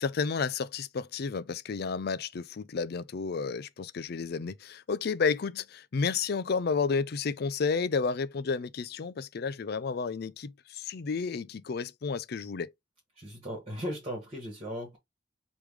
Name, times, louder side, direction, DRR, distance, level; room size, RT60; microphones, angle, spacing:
voice 1, 0.0-12.7, left 5 dB, 55° left, 0.4 m, -31 dB
voice 2, 13.2-15.0, equal, 30° right, 1.5 m, -37 dB
3.5 x 3.2 x 4.6 m
head